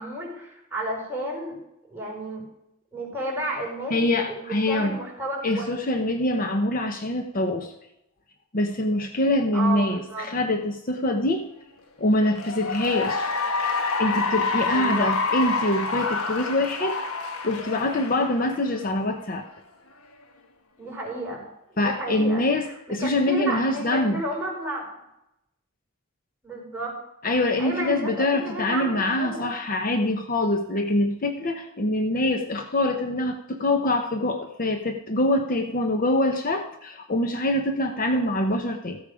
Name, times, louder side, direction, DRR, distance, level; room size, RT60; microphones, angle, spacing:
voice 1, 0.0-1.5 1.9-2.4 2.9-3.9 4.2-5.8 9.5-10.3 14.7-15.1 20.8-21.4 21.7-22.4 22.9-24.9 26.4-27.0 27.6-29.5 38.0-38.2, right 1 dB, 10° right, -4 dB, 4.9 m, -32 dB
voice 2, 3.9-5.0 5.4-7.7 8.5-11.4 12.0-13.3 13.6-17.0 17.4-19.4 21.8-24.2 27.2-39.0, left 1 dB, 40° left, 5 dB, 0.8 m, -24 dB
Cheering / Applause, 12.2-18.9, left 4 dB, 80° left, 1.3 m, -27 dB
14.5 x 8.4 x 5.0 m, 0.84 s
head